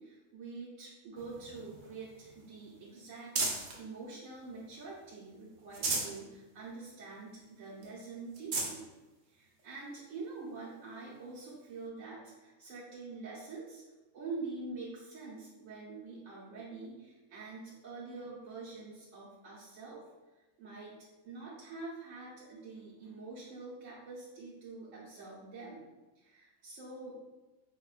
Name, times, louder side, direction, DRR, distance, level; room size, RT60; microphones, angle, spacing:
voice 1, 0.0-8.9 9.3-13.8 14.1-20.0 20.4-20.9 21.2-25.9 26.2-27.2, right 3 dB, 75° right, -7 dB, 1.1 m, -46 dB
sound 1, 1.2-3.8 4.3-5.1 5.5-6.2 6.7-6.8 7.1-7.2 7.8-7.9 8.3-8.8 9.6-9.7 11.5-11.6, right 3 dB, 55° right, 0.5 m, -37 dB
5.1 x 2.2 x 2.4 m, 1.1 s
omnidirectional pair, 1.4 m